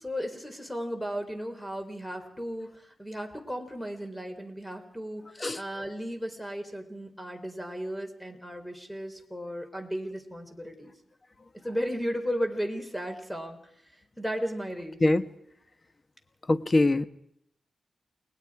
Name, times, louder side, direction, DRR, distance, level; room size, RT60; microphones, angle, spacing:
voice 1, 0.0-2.7 3.0-5.2 5.5-10.9 11.6-13.6 14.2-15.0, equal, 5° left, 6 dB, 3.7 m, -35 dB
voice 2, 16.5-17.1, left 2 dB, 30° left, 11 dB, 1.2 m, -23 dB
29.5 x 20.5 x 4.9 m, 0.71 s
cardioid pair, 90°, 0 cm